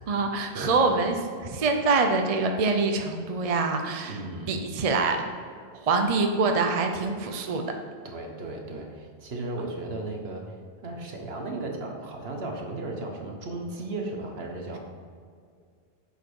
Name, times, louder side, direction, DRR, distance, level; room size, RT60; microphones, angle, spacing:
voice 1, 0.1-1.2 1.4-4.2 4.5-5.2 5.8-7.7, right 3 dB, 40° right, 4 dB, 0.7 m, -25 dB
voice 2, 4.0-4.6 8.0-10.6 10.8-14.8, right 2 dB, 70° right, 2 dB, 1.4 m, -35 dB
8.2 x 6.3 x 4.7 m, 2.2 s
omnidirectional pair, 1.1 m